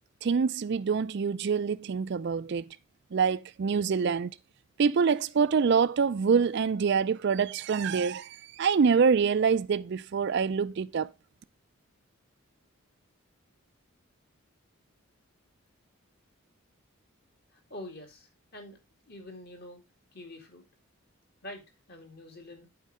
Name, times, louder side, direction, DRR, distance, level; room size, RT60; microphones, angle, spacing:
voice 1, 0.2-2.6 3.1-4.3 4.8-11.1, right 6 dB, 55° right, 0.4 m, -25 dB
voice 2, 17.5-18.8 19.1-19.8 20.1-20.6 21.4-21.6 21.9-22.7, left 1 dB, 45° left, 2.2 m, -45 dB
8.4 x 4.5 x 4.9 m
head